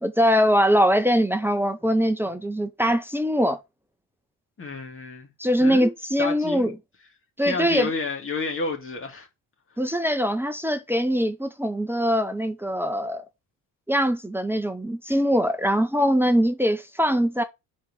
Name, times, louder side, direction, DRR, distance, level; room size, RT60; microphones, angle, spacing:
voice 1, 0.0-3.6 5.4-6.7 7.4-7.9 9.8-13.2 13.9-17.4, equal, 5° right, 1.0 m, -22 dB
voice 2, 4.6-5.3 5.6-5.9 6.2-6.7 7.4-9.3, left 4 dB, 30° left, 2.3 m, -30 dB
4.7 x 4.4 x 5.5 m
cardioid pair, 90°, 41 cm